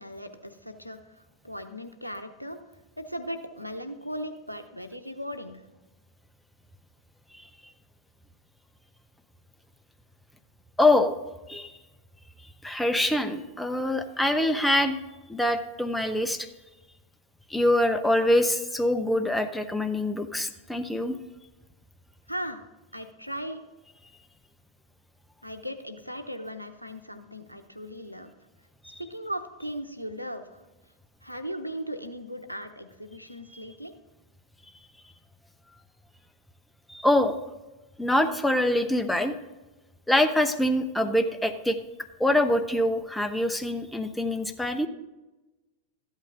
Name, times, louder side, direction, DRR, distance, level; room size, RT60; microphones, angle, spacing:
voice 1, 0.0-2.6 3.0-5.6 22.3-22.6 22.9-23.6 25.4-28.3 29.0-30.7 31.2-33.9, equal, 90° left, 8 dB, 0.8 m, -37 dB
voice 2, 10.8-11.2 11.5-11.7 12.6-15.0 15.3-16.5 17.5-21.2 36.9-37.4 38.0-39.3 40.1-41.8 42.2-44.9, left 1 dB, 5° left, 7 dB, 0.8 m, -24 dB
13.0 x 8.4 x 3.7 m, 1.1 s
figure-of-eight pair, 90°, 0 cm